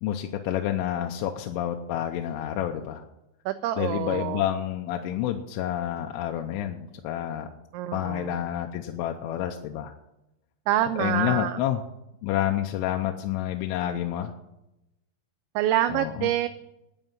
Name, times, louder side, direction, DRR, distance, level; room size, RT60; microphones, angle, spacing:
voice 1, 0.0-3.1 3.8-7.5 7.9-10.0 11.0-11.8 12.2-14.3 15.9-16.3, left 11 dB, 90° left, 4 dB, 3.2 m, -29 dB
voice 2, 3.5-4.4 7.7-8.4 10.7-11.6 15.6-16.5, right 12 dB, 85° right, 10 dB, 2.7 m, -26 dB
11.0 x 9.1 x 7.4 m, 0.91 s
omnidirectional pair, 5.6 m